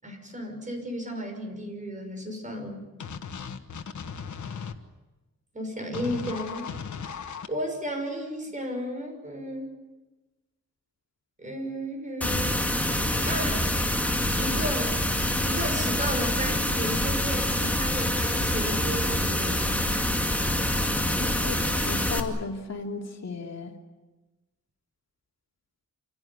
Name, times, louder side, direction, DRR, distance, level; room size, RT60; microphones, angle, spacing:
voice 1, 0.0-2.9 5.5-6.7 7.5-9.7 11.4-12.6 13.2-13.6 14.4-14.9 15.4-19.8, equal, 25° right, 3 dB, 5.9 m, -34 dB
sound 1, 3.0-4.7 5.9-7.5, left 6 dB, 80° left, 1.6 m, -36 dB
sound 2, 12.2-22.2, left 1 dB, 5° left, 2.3 m, -26 dB
voice 2, 21.2-23.7, left 4 dB, 60° left, 2 dB, 2.8 m, -35 dB
27.5 x 17.0 x 9.5 m, 1.1 s
wide cardioid pair, 135°, 29 cm